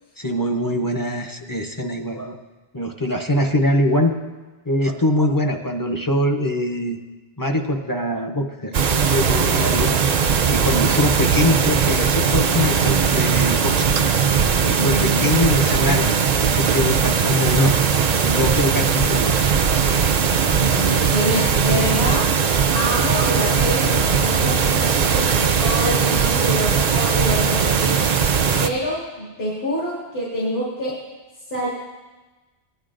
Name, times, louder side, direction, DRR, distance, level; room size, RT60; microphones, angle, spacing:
voice 1, 0.2-2.4 2.7-4.1 4.7-7.0 7.4-8.7 9.1-10.0 10.5-13.9 14.6-19.4, left 1 dB, 25° left, 3 dB, 0.6 m, -23 dB
sound 1, 8.7-28.7, right 6 dB, 50° right, 0.5 m, -19 dB
voice 2, 14.8-15.2 20.6-22.3 22.7-28.1 28.6-31.1 31.5-31.7, equal, 70° left, -6 dB, 2.2 m, -26 dB
17.5 x 10.0 x 2.5 m, 1.2 s
omnidirectional pair, 1.1 m